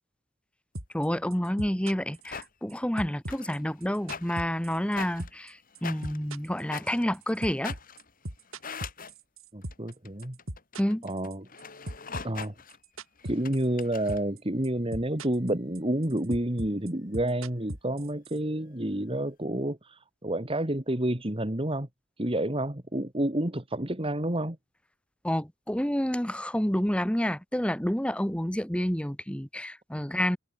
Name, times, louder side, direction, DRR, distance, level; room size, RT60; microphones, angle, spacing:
sound 1, 0.7-1.1 1.3-2.7 3.0-4.9 5.2-5.5 5.7-9.9 10.2-11.6 11.9-13.8 14.1-14.4 14.6-15.5 15.7-18.4, right 1 dB, 75° right, 5.4 m, -38 dB
voice 1, 0.9-7.7 10.8-11.1 25.2-30.4, equal, 5° left, 1.1 m, -29 dB
sound 2, 1.9-2.5 3.2-9.1 9.6-14.3, left 6 dB, 40° left, 3.0 m, -43 dB
voice 2, 9.5-10.4 11.0-11.5 12.2-12.5 13.2-21.9 22.2-24.6, right 1 dB, 25° right, 2.2 m, -29 dB
head